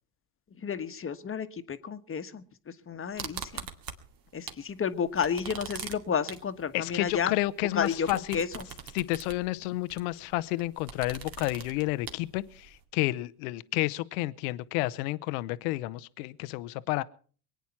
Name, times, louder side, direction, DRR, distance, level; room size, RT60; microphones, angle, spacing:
voice 1, 0.6-2.4 2.9-3.5 4.3-7.3 7.7-8.1 8.3-8.6, left 7 dB, 30° left, 1.3 m, -31 dB
sound 1, 3.2-4.7 5.0-12.8, right 7 dB, 50° right, 2.2 m, -43 dB
voice 2, 6.7-8.4 8.9-17.0, left 19 dB, 70° left, 0.8 m, -30 dB
22.5 x 9.4 x 5.8 m
hypercardioid pair, 75°, 45 cm